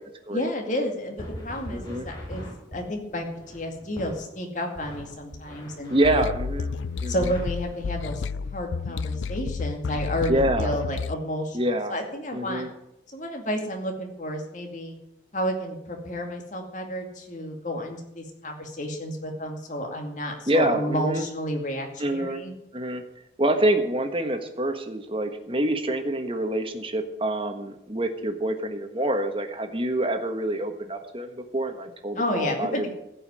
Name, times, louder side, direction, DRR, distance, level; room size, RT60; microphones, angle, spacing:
voice 1, 0.3-5.9 7.1-8.2 8.5-12.6 13.1-14.9 15.3-22.5 32.2-32.9, equal, 40° left, 2 dB, 2.3 m, -31 dB
sound 1, 1.2-4.2 4.7-8.1, equal, 25° left, 5.3 m, -41 dB
voice 2, 1.7-2.1 5.9-6.7 7.0-7.3 10.3-10.8 11.5-11.9 12.3-12.7 20.5-21.3 22.0-22.4 22.7-23.0 23.4-32.9, right 1 dB, 30° right, 6 dB, 1.4 m, -26 dB
sound 2, 6.0-11.2, left 5 dB, 85° left, 0.4 m, -31 dB
15.5 x 5.6 x 9.8 m, 0.85 s
head